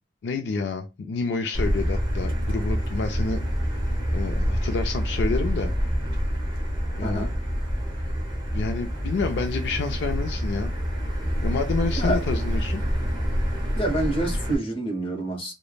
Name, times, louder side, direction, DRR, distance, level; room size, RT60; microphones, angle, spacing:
voice 1, 0.2-3.4 4.1-5.7 6.9-7.3 8.5-10.7 11.4-12.8, left 4 dB, 65° left, 0.3 m, -29 dB
Motor vehicle (road), 1.5-14.5, equal, 25° right, 0.9 m, -27 dB
voice 2, 7.0-7.3 12.0-12.2 13.7-15.5, right 1 dB, 30° left, 0.7 m, -27 dB
3.1 x 2.0 x 2.3 m
head